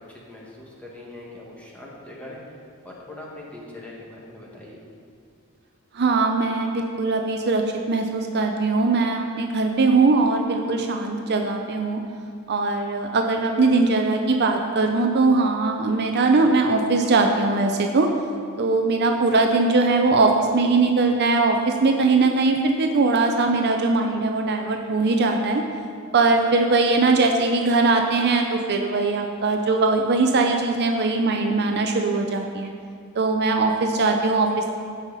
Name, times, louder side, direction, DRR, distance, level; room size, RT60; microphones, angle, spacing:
voice 1, 0.0-2.4 2.8-4.8 26.3-26.5, left 1 dB, 5° left, -5 dB, 1.8 m, -41 dB
voice 2, 5.9-7.6 7.9-12.0 12.5-18.1 18.6-25.6 26.1-32.7 33.2-34.7, right 3 dB, 50° right, 3 dB, 0.6 m, -20 dB
16.0 x 5.6 x 4.1 m, 2.3 s
head